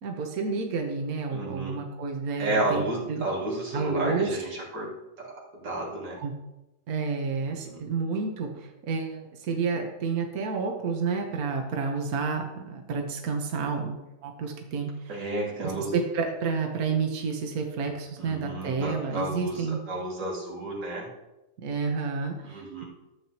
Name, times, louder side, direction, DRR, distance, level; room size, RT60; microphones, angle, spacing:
voice 1, 0.0-3.3 3.7-4.4 6.2-6.3 6.9-15.1 15.6-19.8 21.6-22.8, right 5 dB, 60° right, 2 dB, 1.5 m, -30 dB
voice 2, 1.3-1.8 2.4-4.9 5.2-6.2 7.4-7.8 15.1-15.9 18.2-21.1 22.4-22.8, right 1 dB, 85° right, -4 dB, 3.1 m, -32 dB
13.5 x 7.9 x 2.9 m, 0.97 s
omnidirectional pair, 1.9 m